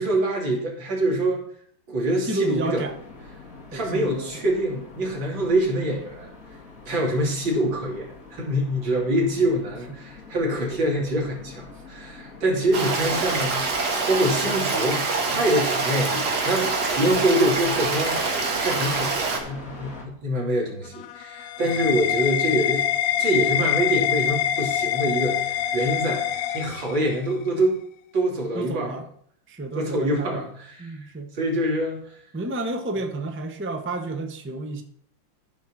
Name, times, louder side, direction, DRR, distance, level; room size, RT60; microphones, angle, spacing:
voice 1, 0.0-1.4 1.9-2.8 3.7-6.3 6.9-18.2 18.6-22.8 23.2-26.2 26.5-27.8 28.1-28.9 29.8-30.5 31.3-32.0, right 1 dB, 85° right, -1 dB, 3.3 m, -25 dB
voice 2, 2.2-3.0 3.7-4.4 9.9-10.0 21.6-21.8 28.5-29.1 29.5-30.5 30.8-31.3 32.3-34.8, right 2 dB, 15° right, 5 dB, 0.5 m, -31 dB
sound 1, 2.9-20.0, left 3 dB, 45° left, 2.6 m, -44 dB
Stream, 12.7-19.4, right 3 dB, 60° right, 2.2 m, -25 dB
sound 2, 20.9-27.3, left 10 dB, 75° left, 0.8 m, -25 dB
13.5 x 4.8 x 6.1 m, 0.64 s
omnidirectional pair, 2.0 m